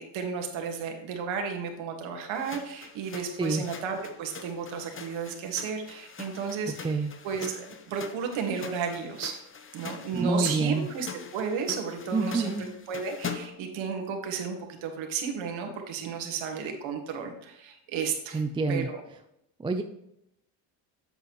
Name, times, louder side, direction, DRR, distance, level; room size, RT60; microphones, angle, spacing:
voice 1, 0.0-7.0 7.2-9.4 9.7-11.1 11.3-18.4 18.7-19.0, right 6 dB, 70° right, 3 dB, 1.9 m, -33 dB
sound 1, 2.3-13.7, left 5 dB, 25° left, 0.8 m, -43 dB
voice 2, 6.7-7.1 10.1-10.9 12.1-12.7 18.3-18.9 19.6-19.8, right 3 dB, 10° right, 6 dB, 0.4 m, -27 dB
7.9 x 7.5 x 3.1 m, 0.82 s
cardioid pair, 100°, 48 cm